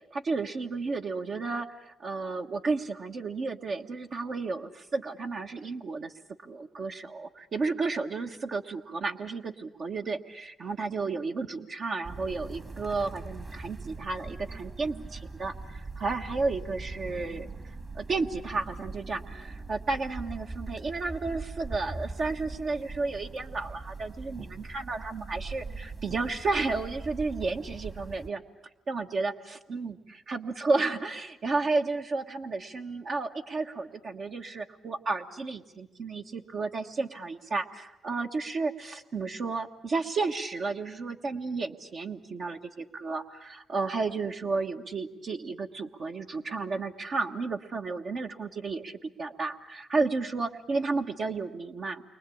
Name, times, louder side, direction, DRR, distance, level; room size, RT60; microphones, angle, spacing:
voice 1, 0.1-6.1 6.4-17.5 17.9-28.4 28.9-52.0, right 3 dB, 55° right, 3 dB, 1.4 m, -32 dB
sound 1, 12.0-28.3, right 3 dB, 30° right, 1.9 m, -41 dB
29.0 x 24.0 x 8.6 m, 0.97 s
cardioid pair, 85°, 0 cm